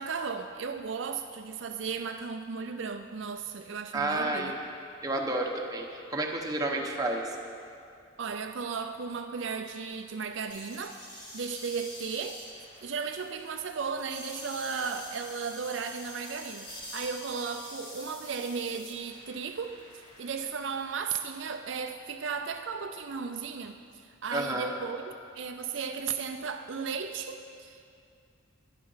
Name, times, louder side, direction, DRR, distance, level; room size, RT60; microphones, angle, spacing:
voice 1, 0.0-4.5 8.2-11.0 11.3-12.4 12.8-19.8 20.2-23.8 24.0-27.9, right 5 dB, 65° right, 6 dB, 0.5 m, -35 dB
voice 2, 3.9-4.5 5.0-7.4 24.3-24.7, right 2 dB, 20° right, 0 dB, 1.1 m, -30 dB
sound 1, 10.5-20.4, equal, 25° left, 3.1 m, -46 dB
12.0 x 10.5 x 5.6 m, 2.4 s
head